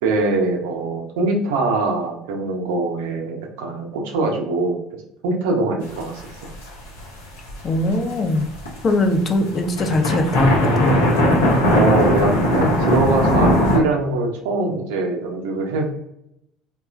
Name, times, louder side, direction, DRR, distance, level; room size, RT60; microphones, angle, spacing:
voice 1, 0.0-6.5 11.7-15.9, right 3 dB, 70° right, 1 dB, 0.5 m, -23 dB
sound 1, 5.9-7.0 7.4-8.9 9.3-9.4 9.6-13.8, left 1 dB, 85° left, 0.6 m, -18 dB
voice 2, 7.6-8.5 8.8-11.0, left 2 dB, 40° left, 5 dB, 0.5 m, -20 dB
2.9 x 2.2 x 2.3 m, 0.77 s
hypercardioid pair, 60°, 0 cm